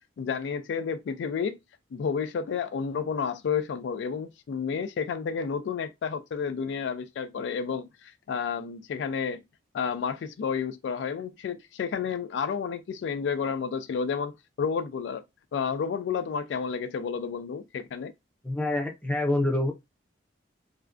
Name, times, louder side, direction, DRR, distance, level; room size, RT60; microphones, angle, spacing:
voice 1, 0.2-1.6 1.9-9.4 9.7-15.2 15.5-18.1, left 6 dB, 70° left, 0.3 m, -31 dB
voice 2, 18.4-19.7, left 1 dB, 5° left, 0.5 m, -26 dB
2.4 x 2.1 x 2.3 m
head